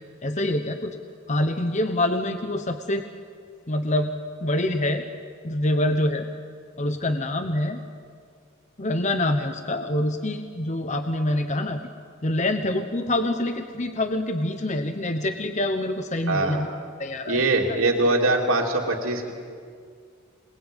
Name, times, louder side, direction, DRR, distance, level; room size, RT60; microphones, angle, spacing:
voice 1, 0.2-1.0 1.3-3.0 3.7-4.1 4.4-5.0 5.4-6.3 6.8-7.8 8.8-11.8 12.2-16.7 17.0-17.4 17.7-17.8, left 1 dB, 35° left, 7 dB, 1.1 m, -25 dB
voice 2, 16.3-16.6 17.3-19.3, right 2 dB, 85° right, 0 dB, 3.0 m, -22 dB
27.0 x 20.5 x 9.2 m, 2.2 s
head